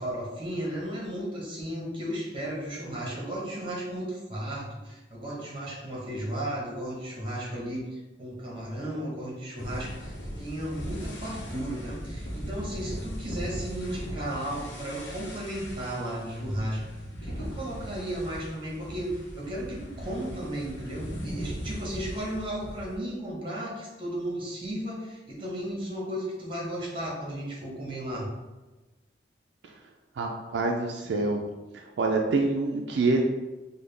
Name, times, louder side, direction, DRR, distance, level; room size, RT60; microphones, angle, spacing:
voice 1, 0.0-16.9 17.2-28.3, right 1 dB, 30° right, -4 dB, 1.0 m, -34 dB
sound 1, 9.6-23.0, equal, 85° left, 0.8 m, -39 dB
voice 2, 30.2-31.4 31.7-33.2, right 3 dB, 75° right, 1 dB, 0.4 m, -26 dB
3.7 x 2.2 x 3.3 m, 1.2 s
head